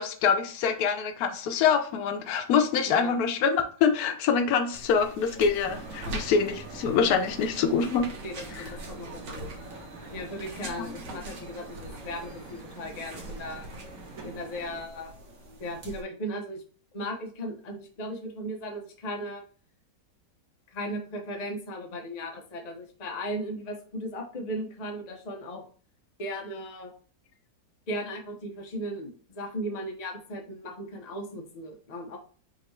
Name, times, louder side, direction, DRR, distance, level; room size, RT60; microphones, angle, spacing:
voice 1, 0.0-8.1 8.5-8.6 10.8-10.9, left 6 dB, 65° left, 6 dB, 1.1 m, -25 dB
voice 2, 2.9-3.2 6.0-6.2 8.2-9.5 10.1-13.7 14.2-15.1 15.6-16.6 16.9-19.4 20.7-25.6 26.2-26.9 27.9-32.2, equal, 45° left, 2 dB, 0.5 m, -37 dB
sound 1, 4.7-16.0, right 1 dB, 80° right, 1.7 m, -43 dB
sound 2, 5.6-14.8, right 3 dB, 55° right, 1.4 m, -45 dB
5.0 x 2.8 x 3.1 m, 0.42 s
omnidirectional pair, 1.9 m